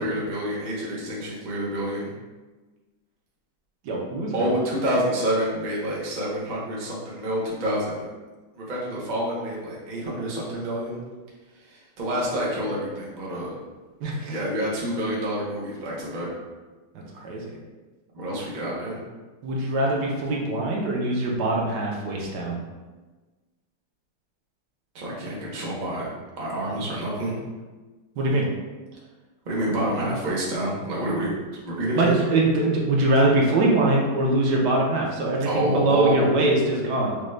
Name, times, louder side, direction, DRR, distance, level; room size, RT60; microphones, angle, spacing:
voice 1, 0.0-2.1 4.3-8.0 8.6-11.0 11.5-13.5 14.3-16.3 18.1-19.0 24.9-26.1 26.4-27.3 29.4-31.4 31.6-32.2 35.4-36.3, right 1 dB, 80° right, -5 dB, 0.4 m, -28 dB
voice 2, 3.8-4.5 14.0-14.4 16.9-17.4 19.4-22.6 28.2-28.5 32.0-37.2, right 2 dB, 65° right, -2 dB, 1.1 m, -23 dB
5.0 x 2.2 x 3.2 m, 1.3 s
omnidirectional pair, 2.2 m